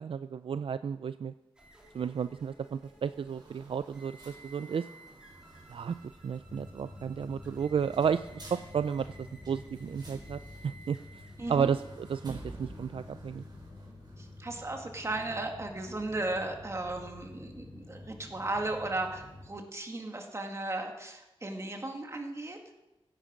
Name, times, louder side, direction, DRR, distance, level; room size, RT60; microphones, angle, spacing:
voice 1, 0.0-1.3 1.9-4.9 5.7-5.9 6.2-13.4, right 7 dB, 65° right, 12 dB, 0.4 m, -33 dB
sound 1, 1.5-13.4, right 1 dB, 10° right, 3.6 m, -56 dB
sound 2, 2.7-14.6, right 2 dB, 45° right, 4.3 m, -53 dB
sound 3, 6.4-19.5, left 2 dB, 55° left, 4.3 m, -49 dB
voice 2, 11.4-11.7 14.2-22.6, right 2 dB, 30° right, 2 dB, 2.1 m, -36 dB
16.5 x 11.0 x 5.2 m, 0.97 s
wide cardioid pair, 125°, 10 cm